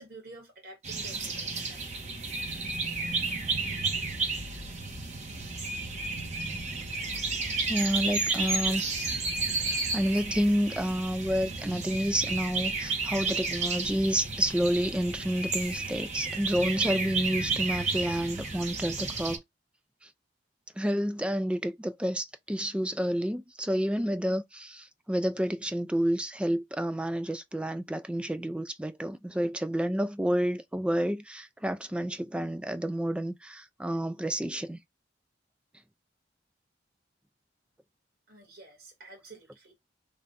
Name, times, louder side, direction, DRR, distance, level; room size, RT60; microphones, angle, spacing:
voice 1, 0.0-1.9 38.3-39.7, right 2 dB, 55° right, 1.8 m, -49 dB
sound 1, 0.8-19.4, right 3 dB, 40° right, 1.0 m, -32 dB
sound 2, 3.8-9.2, left 3 dB, 85° left, 0.6 m, -49 dB
voice 2, 7.7-8.8 9.9-19.4 20.8-34.8, equal, 5° right, 0.3 m, -29 dB
3.3 x 2.5 x 3.9 m
head